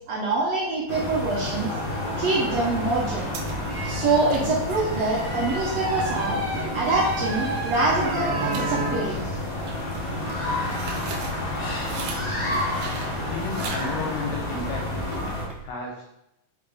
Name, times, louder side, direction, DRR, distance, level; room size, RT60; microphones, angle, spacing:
voice 1, 0.1-1.7 2.2-3.3 3.8-6.4 6.7-9.4, right 3 dB, 75° right, -4 dB, 1.6 m, -25 dB
sound 1, 0.9-15.4, left 1 dB, 65° left, 0.8 m, -30 dB
sound 2, 2.8-15.7, right 3 dB, 90° right, 2.1 m, -41 dB
sound 3, 3.6-4.4 4.7-9.1, right 1 dB, 55° right, 0.7 m, -31 dB
voice 2, 13.3-14.9 15.6-16.0, left 4 dB, 80° left, -1 dB, 1.6 m, -32 dB
4.7 x 2.3 x 3.7 m, 0.85 s
omnidirectional pair, 3.4 m